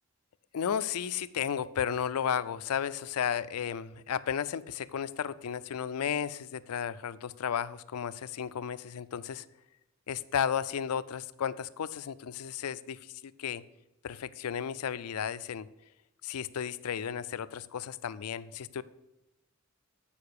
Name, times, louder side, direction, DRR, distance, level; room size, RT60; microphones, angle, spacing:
voice 1, 0.5-9.5 10.1-13.6 14.0-15.7 16.2-18.8, left 8 dB, 85° left, 16 dB, 0.4 m, -33 dB
8.7 x 5.0 x 6.6 m, 0.94 s
head